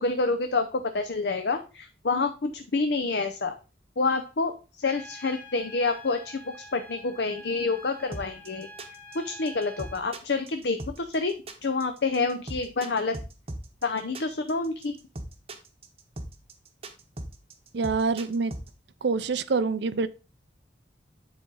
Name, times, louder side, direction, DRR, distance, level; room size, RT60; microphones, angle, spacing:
voice 1, 0.0-3.5 4.0-8.7 9.1-11.4 11.6-13.2 13.8-15.0, left 3 dB, 65° left, 0.6 m, -28 dB
Trumpet, 4.8-10.0, equal, 10° left, 1.1 m, -47 dB
sound 1, 8.1-18.7, right 1 dB, 30° right, 0.9 m, -38 dB
voice 2, 17.7-18.5 19.0-20.1, right 4 dB, 70° right, 0.5 m, -26 dB
9.7 x 4.1 x 3.8 m
head